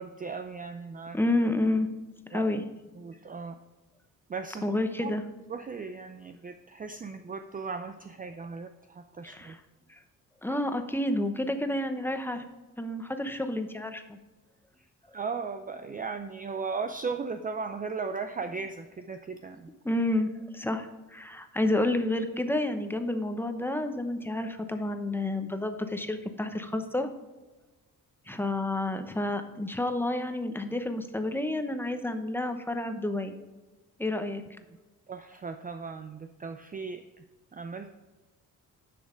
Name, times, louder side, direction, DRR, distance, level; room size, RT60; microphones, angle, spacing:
voice 1, 0.0-1.2 2.3-2.5 2.9-3.6 4.3-4.7 5.0-5.1 5.5-9.6 14.8-14.9 15.1-19.7 35.1-37.2 37.5-37.9, right 5 dB, 25° right, 8 dB, 0.5 m, -37 dB
voice 2, 1.1-1.9 2.3-2.6 4.6-5.2 9.2-9.6 10.4-12.4 12.8-14.2 19.8-27.1 28.3-33.3 34.0-34.4, left 1 dB, 5° left, 7 dB, 0.9 m, -30 dB
10.5 x 6.4 x 5.1 m, 1.2 s
cardioid pair, 120°, 34 cm